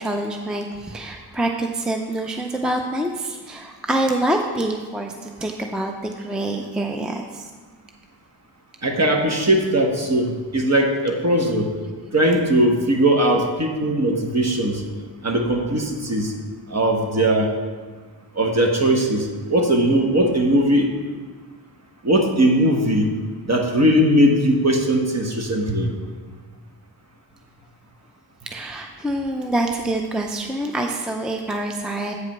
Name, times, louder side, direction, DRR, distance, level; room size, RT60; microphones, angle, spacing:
voice 1, 0.0-7.4 28.4-32.1, right 1 dB, ahead, 3 dB, 0.5 m, -26 dB
voice 2, 8.8-11.7 12.1-14.8 15.2-16.3 16.7-17.5 18.3-20.9 22.0-23.1 23.4-25.9, right 1 dB, 35° right, 2 dB, 1.1 m, -19 dB
8.3 x 4.9 x 5.9 m, 1.5 s
wide cardioid pair, 95°, 43 cm